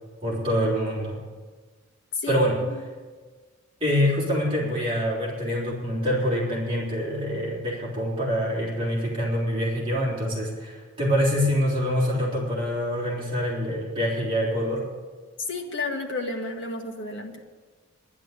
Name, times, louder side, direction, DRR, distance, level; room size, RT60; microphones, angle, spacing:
voice 1, 0.2-1.2 2.3-2.6 3.8-14.8, equal, 25° right, -5 dB, 3.3 m, -25 dB
voice 2, 15.4-17.4, left 3 dB, 55° left, 0 dB, 1.8 m, -31 dB
11.0 x 10.5 x 8.2 m, 1.4 s
head